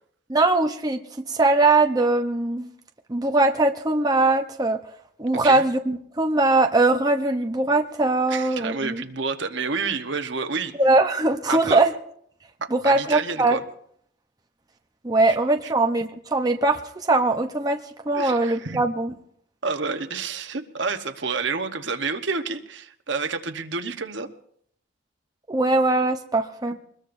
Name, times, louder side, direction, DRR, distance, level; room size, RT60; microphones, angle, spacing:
voice 1, 0.3-2.7 3.1-4.8 5.2-9.0 10.8-11.9 12.7-13.6 15.0-19.1 25.5-26.8, right 2 dB, 20° right, 3 dB, 0.8 m, -21 dB
voice 2, 5.3-5.6 8.3-10.7 11.5-11.8 12.6-13.6 15.6-15.7 18.1-18.8 19.6-24.3, right 4 dB, 60° right, 7 dB, 1.1 m, -29 dB
23.5 x 20.5 x 2.7 m, 0.66 s
head